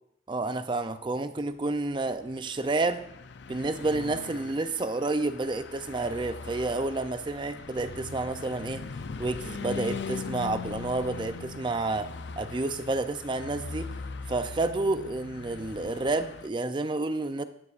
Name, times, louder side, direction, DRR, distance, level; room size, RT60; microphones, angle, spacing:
voice 1, 0.3-3.0 3.5-8.8 9.2-12.1 12.4-13.9 14.3-17.4, right 2 dB, 25° right, 10 dB, 0.4 m, -30 dB
Car passing by / Truck, 2.1-16.5, left 4 dB, 65° left, 0.5 m, -40 dB
13.5 x 9.7 x 2.5 m, 0.74 s
head